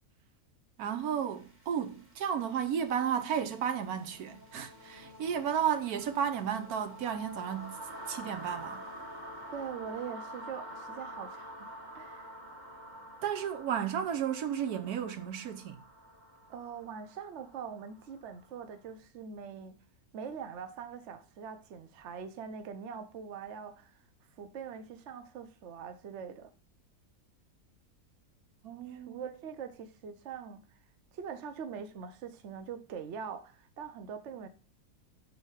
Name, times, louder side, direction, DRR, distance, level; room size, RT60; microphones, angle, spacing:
voice 1, 0.8-7.8 8.1-8.9 13.2-15.8 28.6-29.3, right 8 dB, 85° right, 1.2 m, -33 dB
sound 1, 0.9-18.7, equal, 30° right, 1.5 m, -48 dB
voice 2, 9.5-11.7 11.9-12.3 16.5-19.8 20.1-23.9 24.4-26.5 28.9-30.6 31.1-34.5, right 7 dB, 55° right, 1.1 m, -43 dB
6.4 x 4.3 x 4.8 m
omnidirectional pair, 1.6 m